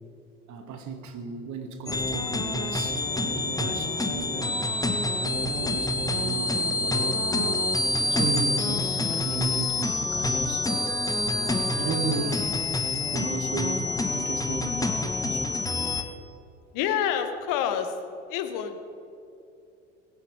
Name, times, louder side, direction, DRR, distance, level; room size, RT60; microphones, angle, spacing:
voice 1, 0.5-4.5 5.2-7.7 8.0-10.7 11.2-12.6 13.1-15.6, right 4 dB, 50° right, 6 dB, 2.0 m, -35 dB
sound 1, 1.9-16.0, left 2 dB, 10° left, 1.2 m, -27 dB
voice 2, 16.7-17.9 18.3-18.8, left 9 dB, 60° left, 8 dB, 1.5 m, -27 dB
22.0 x 8.1 x 4.9 m, 2.7 s
hypercardioid pair, 65°, 37 cm